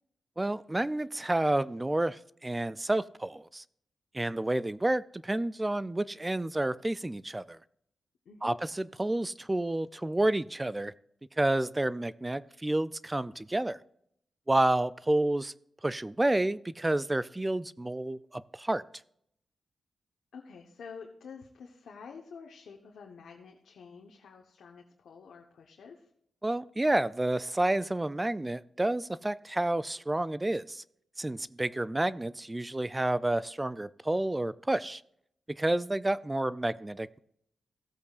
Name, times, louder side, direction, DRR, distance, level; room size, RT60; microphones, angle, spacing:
voice 1, 0.4-3.6 4.1-7.6 8.4-10.9 11.4-13.8 14.5-15.5 15.8-18.8 26.4-30.8 31.2-35.0 35.5-37.2, right 1 dB, 15° right, 0.3 m, -30 dB
voice 2, 8.2-8.6 20.3-26.1, left 5 dB, 80° left, 1.1 m, -49 dB
16.0 x 8.3 x 2.4 m
cardioid pair, 95°, 0 cm